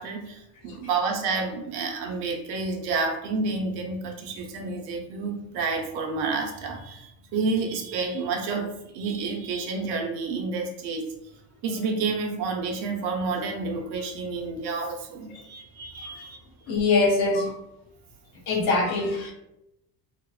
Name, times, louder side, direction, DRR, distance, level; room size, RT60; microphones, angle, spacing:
voice 1, 0.0-11.0 11.6-16.4, right 4 dB, 60° right, 2 dB, 0.6 m, -29 dB
voice 2, 16.7-17.5 18.5-19.3, left 3 dB, 55° left, -1 dB, 0.8 m, -23 dB
2.8 x 2.1 x 2.3 m, 0.85 s
cardioid pair, 155°, 44 cm